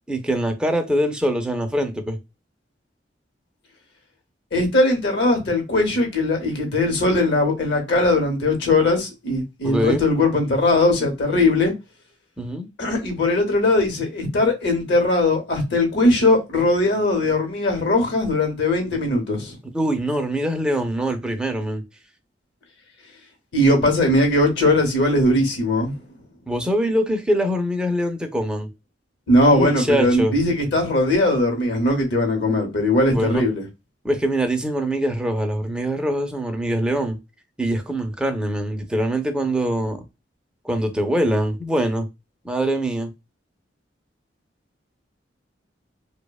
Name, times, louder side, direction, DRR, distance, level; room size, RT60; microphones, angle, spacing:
voice 1, 0.1-2.2 9.6-10.0 12.4-12.7 19.7-21.8 26.5-28.7 29.5-30.3 33.1-33.4 34.0-37.2 37.6-40.0 40.6-42.1 42.4-43.1, right 1 dB, 5° right, 0.4 m, -23 dB
voice 2, 4.5-11.7 12.8-19.6 23.5-26.0 29.3-33.7, left 2 dB, 65° left, 0.8 m, -19 dB
2.7 x 2.1 x 2.2 m
head